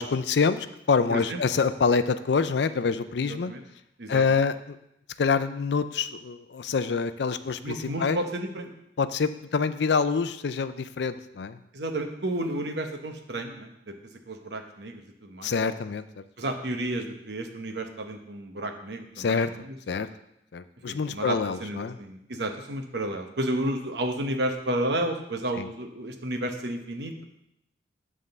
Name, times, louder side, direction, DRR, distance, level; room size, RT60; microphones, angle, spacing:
voice 1, 0.0-3.5 4.1-4.8 5.2-8.2 9.0-11.6 15.4-16.2 19.2-19.5 19.9-20.1 20.5-22.0 25.6-25.7, left 5 dB, 65° left, 12 dB, 0.4 m, -26 dB
voice 2, 1.1-1.4 3.3-3.6 4.0-4.4 7.6-8.7 11.7-13.9 14.3-15.5 16.4-20.0 20.9-27.2, right 1 dB, 65° right, 5 dB, 1.0 m, -32 dB
9.5 x 3.7 x 6.6 m, 0.82 s
head